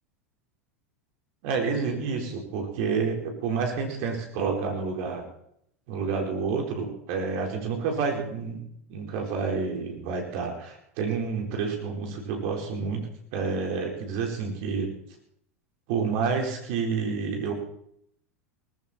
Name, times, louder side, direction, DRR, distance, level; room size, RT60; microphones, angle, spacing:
voice 1, 1.4-5.2 5.9-8.6 8.9-13.1 13.3-14.9 15.9-17.5, right 5 dB, 55° right, 2 dB, 4.4 m, -29 dB
19.0 x 14.5 x 4.3 m, 0.71 s
figure-of-eight pair, 85°, 8 cm